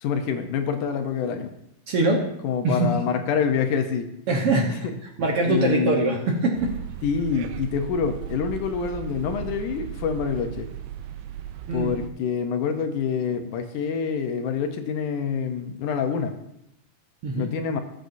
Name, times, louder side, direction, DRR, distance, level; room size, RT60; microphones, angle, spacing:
voice 1, 0.0-1.5 2.4-4.1 4.7-4.9 5.4-6.2 7.0-10.7 11.7-16.3 17.3-17.8, left 6 dB, 75° left, 6 dB, 2.2 m, -26 dB
voice 2, 1.9-2.3 2.6-2.9 4.3-4.8 5.2-6.8 11.7-11.9 17.2-17.5, right 2 dB, 60° right, 0 dB, 1.7 m, -23 dB
sound 1, 6.5-12.1, right 10 dB, 75° right, 1.9 m, -36 dB
19.5 x 7.9 x 2.7 m, 0.83 s
omnidirectional pair, 3.8 m